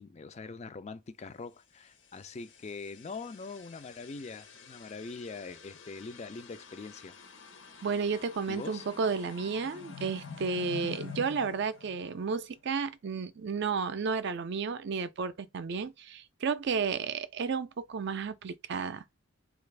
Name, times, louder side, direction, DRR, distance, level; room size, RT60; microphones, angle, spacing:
voice 1, 0.0-7.1 8.5-8.9, left 4 dB, 30° left, 0.4 m, -43 dB
sound 1, 1.9-12.6, left 5 dB, 60° left, 0.8 m, -48 dB
voice 2, 7.8-19.0, right 5 dB, 55° right, 0.4 m, -32 dB
3.9 x 2.4 x 3.2 m
head